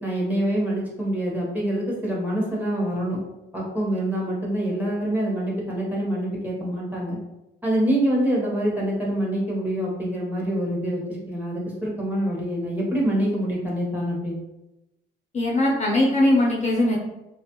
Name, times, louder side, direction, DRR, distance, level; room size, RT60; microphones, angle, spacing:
voice 1, 0.0-3.2 3.5-7.2 7.6-14.4, right 1 dB, 10° right, -4 dB, 1.1 m, -25 dB
voice 2, 15.3-17.0, left 1 dB, 35° left, -3 dB, 0.7 m, -20 dB
2.8 x 2.4 x 2.9 m, 0.93 s
cardioid pair, 90°, 20 cm